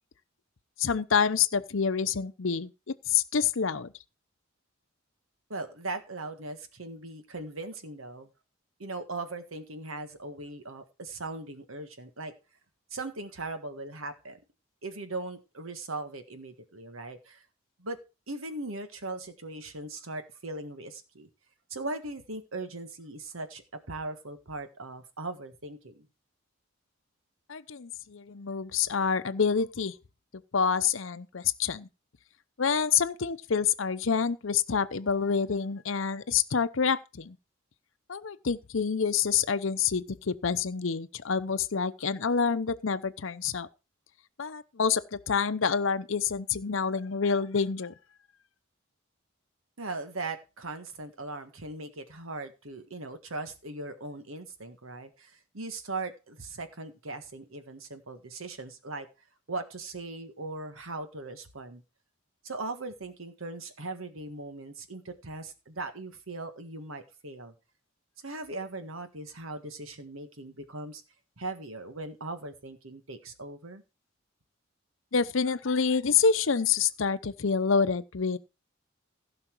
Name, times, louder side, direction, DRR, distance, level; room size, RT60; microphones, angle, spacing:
voice 1, 0.8-3.9 27.5-29.9 30.5-31.9 32.6-37.4 38.1-43.7 44.4-47.9 75.1-78.4, left 6 dB, 70° left, 0.7 m, -27 dB
voice 2, 5.5-8.3 8.8-12.3 12.9-14.4 14.8-17.4 17.8-18.0 18.3-21.3 21.7-26.1 49.8-59.1 59.5-61.8 62.4-67.5 68.2-71.0 71.4-73.8, right 2 dB, 85° right, 1.6 m, -39 dB
16.0 x 5.8 x 4.6 m
head